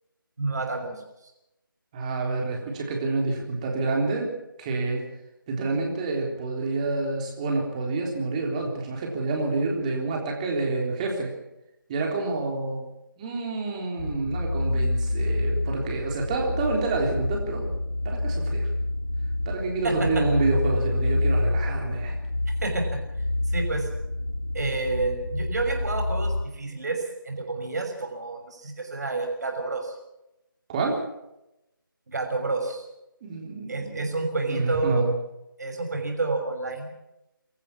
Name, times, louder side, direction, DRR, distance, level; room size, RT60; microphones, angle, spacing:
voice 1, 0.4-0.9 19.8-20.2 22.6-23.0 23.5-23.9 24.5-30.0 32.1-32.8 33.7-35.1 35.6-36.9, right 3 dB, 50° right, 4 dB, 6.0 m, -29 dB
voice 2, 1.9-4.3 4.6-5.0 5.5-11.3 11.9-12.8 13.2-17.7 18.0-18.7 19.5-22.1 30.7-31.0 33.2-34.1 34.5-35.1, right 3 dB, 20° right, 0 dB, 3.7 m, -28 dB
sound 1, 14.0-26.4, left 2 dB, 85° left, 2.6 m, -28 dB
25.0 x 14.5 x 7.4 m, 0.88 s
figure-of-eight pair, 160°, 12 cm